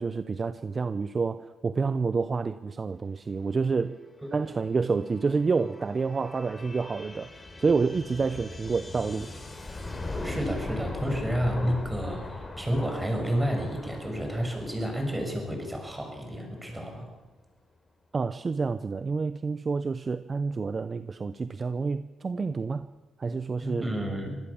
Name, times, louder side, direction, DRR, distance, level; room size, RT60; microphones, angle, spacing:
voice 1, 0.0-4.0 4.3-7.3 7.6-9.3 18.1-22.9 23.2-23.9, right 4 dB, 35° right, 13 dB, 0.7 m, -28 dB
sound 1, 3.6-17.1, left 2 dB, 25° left, 4.2 m, -40 dB
voice 2, 10.2-17.1 23.6-24.4, equal, 10° right, 3 dB, 7.0 m, -30 dB
24.5 x 17.5 x 7.2 m, 1.1 s
cardioid pair, 90°, 0 cm